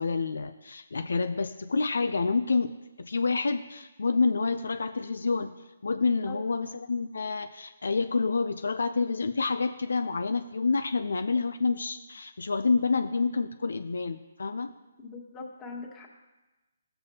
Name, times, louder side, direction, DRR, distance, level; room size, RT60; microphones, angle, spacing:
voice 1, 0.0-2.7 3.0-5.5 5.8-14.7, left 4 dB, 75° left, 9 dB, 0.5 m, -28 dB
voice 2, 5.9-6.4 15.0-16.1, left 3 dB, 15° left, -2 dB, 1.5 m, -41 dB
16.0 x 6.9 x 2.8 m, 1.1 s
hypercardioid pair, 145°, 0 cm